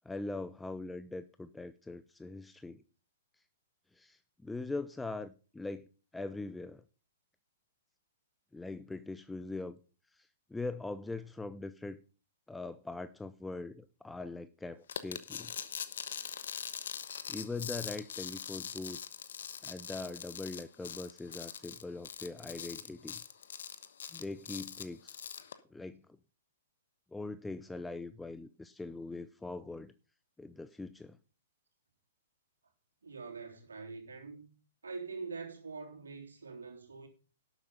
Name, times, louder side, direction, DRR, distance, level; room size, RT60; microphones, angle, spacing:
voice 1, 0.0-2.8 3.9-5.9 6.1-6.8 8.5-9.8 10.1-12.0 12.5-15.5 17.3-19.0 19.6-23.2 24.1-25.2 25.7-26.0 27.1-29.9 30.4-31.2, left 3 dB, 5° left, 0.5 m, -42 dB
sound 1, 14.9-25.5, left 8 dB, 60° left, 1.1 m, -42 dB
voice 2, 33.0-34.5 34.8-37.1, right 4 dB, 70° right, 3.4 m, -44 dB
12.0 x 8.1 x 5.4 m
figure-of-eight pair, 115°, 0 cm